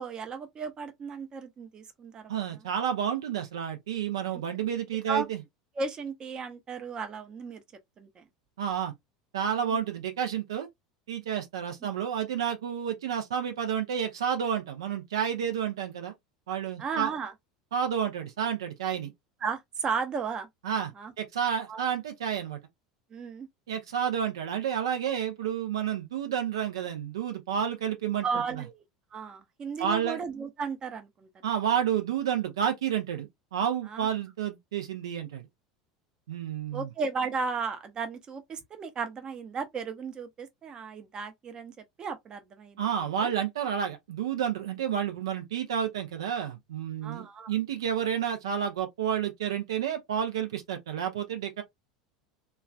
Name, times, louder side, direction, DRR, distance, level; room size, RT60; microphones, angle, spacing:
voice 1, 0.0-2.4 5.1-5.3 5.8-7.6 8.0-8.2 9.6-9.8 16.8-17.3 19.4-20.5 21.0-21.1 21.7-21.8 23.1-23.5 28.2-28.8 29.1-31.5 33.9-34.1 36.7-42.8 43.2-43.3 47.0-47.6, right 5 dB, 30° right, 0.7 m, -35 dB
voice 2, 2.3-5.4 8.6-8.9 9.3-10.7 11.1-16.1 16.5-17.1 17.7-19.1 20.6-20.9 21.2-22.6 23.7-28.3 29.8-30.2 31.4-35.5 36.3-36.9 42.8-51.6, right 8 dB, 65° right, 0.5 m, -30 dB
3.1 x 2.3 x 2.2 m
figure-of-eight pair, 75°, 3 cm